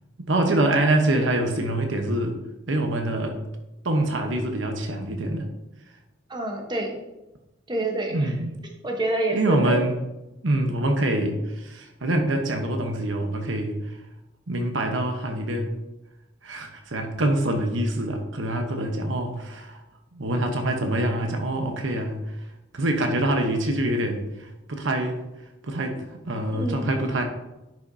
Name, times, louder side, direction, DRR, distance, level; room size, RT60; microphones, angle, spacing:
voice 1, 0.2-2.4 2.7-3.4 3.8-5.5 8.1-8.5 9.3-9.9 10.4-13.8 14.5-15.8 16.4-19.8 20.1-22.2 22.7-25.2 25.6-27.2, right 1 dB, 80° right, 4 dB, 1.0 m, -25 dB
voice 2, 6.3-7.0 7.7-8.4 8.8-9.8 26.5-26.9, right 2 dB, 25° right, 1 dB, 1.0 m, -27 dB
10.5 x 5.7 x 2.7 m, 0.97 s
head